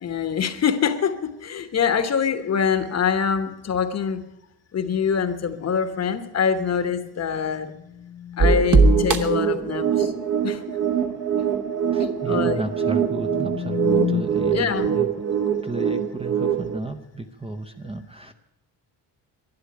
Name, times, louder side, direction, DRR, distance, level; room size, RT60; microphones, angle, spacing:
voice 1, 0.0-4.2 4.7-7.7 8.4-10.1 10.4-10.6 12.3-12.6 14.5-14.9, left 7 dB, 40° left, 10 dB, 1.1 m, -24 dB
sound 1, 7.6-9.7 12.7-14.2, left 9 dB, 85° left, 1.0 m, -31 dB
sound 2, 8.4-16.8, right 6 dB, 50° right, 1.3 m, -22 dB
voice 2, 11.9-15.1 15.5-18.3, right 2 dB, 15° right, 6 dB, 0.6 m, -33 dB
11.5 x 11.5 x 9.9 m, 0.86 s
wide cardioid pair, 170°, 40 cm